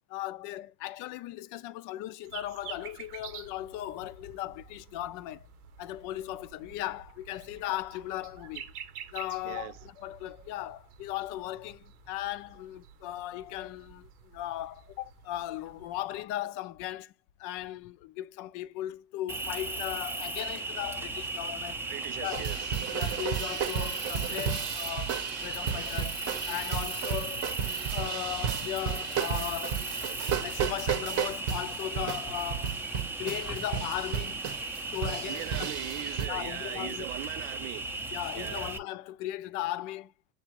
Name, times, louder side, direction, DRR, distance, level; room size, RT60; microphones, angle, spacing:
voice 1, 0.1-5.5 5.8-8.7 9.1-17.1 17.4-21.8 22.2-22.5 22.9-26.2 26.5-27.5 27.9-29.8 30.4-32.8 33.2-34.5 34.9-35.7 36.2-37.1 38.1-40.1, left 14 dB, 45° left, 0.5 m, -37 dB
sound 1, 2.2-16.2, right 8 dB, 85° right, 0.9 m, -49 dB
Cricket, 19.3-38.8, right 2 dB, 5° right, 0.5 m, -36 dB
voice 2, 21.9-22.6 35.2-37.9 38.3-38.7, right 17 dB, 60° right, 0.5 m, -40 dB
sound 2, 22.2-36.3, right 8 dB, 35° right, 0.8 m, -34 dB
6.9 x 2.6 x 2.9 m
hypercardioid pair, 105°, 45 cm